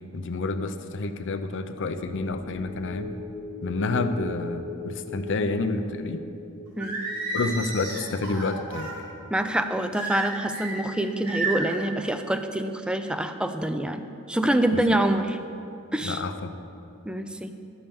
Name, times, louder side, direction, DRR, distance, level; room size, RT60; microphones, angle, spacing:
voice 1, 0.1-3.1 3.6-6.2 7.3-8.9 14.7-14.8 16.0-16.5, left 3 dB, 55° left, 9 dB, 0.6 m, -29 dB
sound 1, 2.0-12.6 12.9-13.1, left 3 dB, 85° left, 2.1 m, -41 dB
Singing, 6.8-9.0 9.9-10.8 11.3-11.8, right 3 dB, 75° right, 2.9 m, -31 dB
voice 2, 9.3-15.4 15.9-16.2 17.0-17.5, right 1 dB, 5° right, 8 dB, 0.4 m, -26 dB
12.5 x 5.6 x 6.9 m, 2.8 s
head